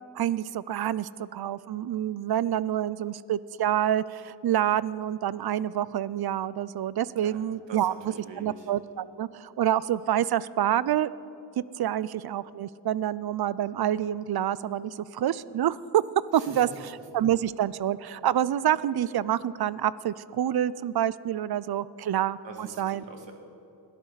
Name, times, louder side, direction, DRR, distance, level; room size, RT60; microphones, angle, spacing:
voice 1, 0.2-7.9 8.4-11.1 11.8-16.0 16.3-23.0, right 11 dB, 60° right, 19 dB, 0.5 m, -27 dB
voice 2, 7.7-8.7 16.3-16.7 22.4-23.3, right 4 dB, 80° right, 2 dB, 2.2 m, -44 dB
21.0 x 13.0 x 4.1 m, 2.6 s
cardioid pair, 65°, 44 cm